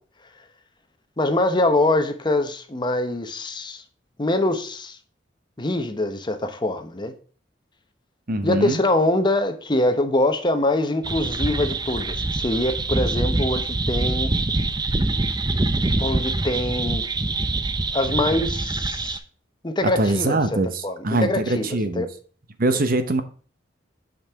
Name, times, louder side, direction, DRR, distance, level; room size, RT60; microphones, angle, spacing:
voice 1, 1.2-3.8 4.2-5.0 5.6-7.1 8.4-14.3 16.0-17.1 17.9-19.2 19.6-20.4 20.8-22.1, left 1 dB, 25° left, 0.9 m, -24 dB
voice 2, 8.3-8.8 19.8-22.1 22.6-23.2, right 2 dB, 50° right, 0.9 m, -23 dB
sound 1, 11.0-19.2, right 2 dB, 25° right, 0.6 m, -24 dB
8.6 x 5.3 x 3.5 m
head